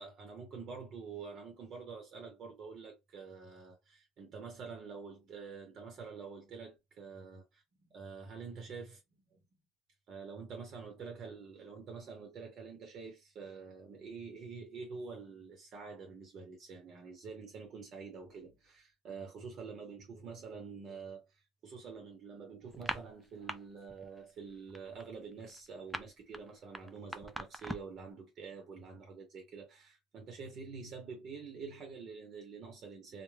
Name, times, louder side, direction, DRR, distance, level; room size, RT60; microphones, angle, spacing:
voice 1, 0.0-7.6 7.9-8.9 9.3-9.4 10.1-33.2, right 5 dB, 50° right, 0.8 m, -47 dB
sound 1, 22.7-23.6 23.9-24.2 24.5-28.0, equal, ahead, 0.4 m, -41 dB
2.3 x 2.1 x 3.2 m
supercardioid pair, 110°, 0 cm